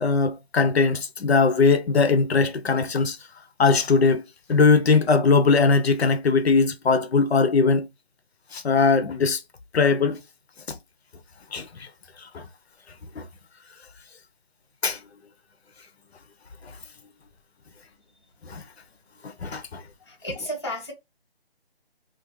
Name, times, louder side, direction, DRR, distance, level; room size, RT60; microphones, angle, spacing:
voice 1, 0.0-3.2 3.6-4.2 4.5-7.9 8.5-9.4 9.7-10.2 11.5-11.7 12.3-12.4 13.2-13.3 14.8-15.0 18.5-18.6 19.4-19.8, left 4 dB, 75° left, 0.6 m, -20 dB
voice 2, 20.0-20.9, equal, 25° left, 0.5 m, -33 dB
2.5 x 2.3 x 3.0 m
figure-of-eight pair, 170°, 32 cm